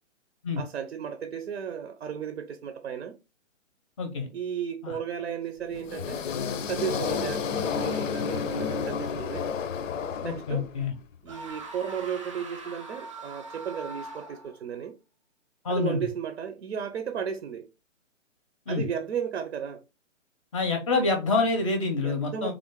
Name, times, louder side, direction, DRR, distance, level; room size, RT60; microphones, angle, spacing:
voice 1, 0.6-3.2 4.3-6.2 6.6-9.5 10.2-10.6 11.2-14.9 15.7-17.7 18.7-19.8 22.0-22.5, right 8 dB, 65° right, 0.6 m, -34 dB
voice 2, 4.0-4.3 4.8-5.0 10.2-10.9 15.6-16.0 18.7-18.9 20.5-22.5, left 3 dB, 25° left, 0.6 m, -27 dB
sound 1, 5.7-10.9, left 6 dB, 75° left, 0.6 m, -31 dB
sound 2, 11.3-14.6, right 2 dB, 25° right, 0.3 m, -42 dB
3.6 x 2.5 x 3.5 m
hypercardioid pair, 140°, 38 cm